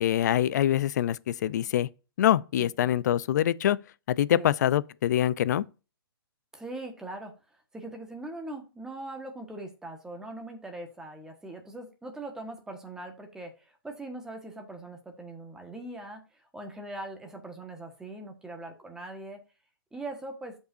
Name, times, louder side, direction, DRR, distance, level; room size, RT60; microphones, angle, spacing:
voice 1, 0.0-1.9 2.2-3.8 4.1-5.6, left 11 dB, 45° left, 0.5 m, -25 dB
voice 2, 6.5-19.4 19.9-20.6, right 2 dB, 5° right, 1.5 m, -41 dB
13.5 x 5.4 x 2.6 m
hypercardioid pair, 155°, 12 cm